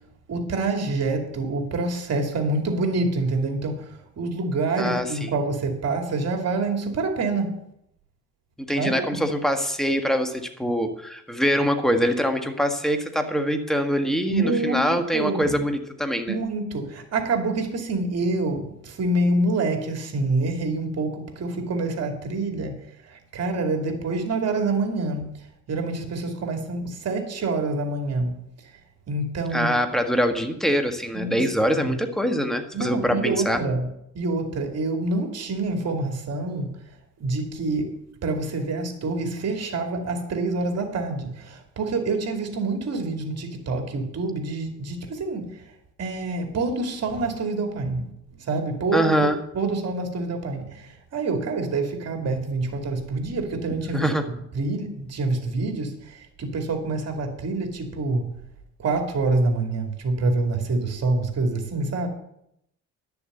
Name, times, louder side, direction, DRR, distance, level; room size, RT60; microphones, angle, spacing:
voice 1, 0.3-7.6 8.7-9.2 14.3-15.7 16.3-22.8 23.1-25.3 25.7-28.3 29.1-29.8 31.1-31.5 31.7-31.9 32.7-33.9 34.1-36.7 37.2-45.5 46.0-48.1 48.5-49.1 49.5-54.1 54.5-58.3 58.8-62.1, right 3 dB, 55° right, 4 dB, 2.6 m, -26 dB
voice 2, 4.8-5.3 8.7-16.4 29.5-33.6 48.9-49.4 53.9-54.2, equal, ahead, 5 dB, 1.6 m, -24 dB
11.0 x 6.9 x 8.0 m, 0.78 s
cardioid pair, 90°, 30 cm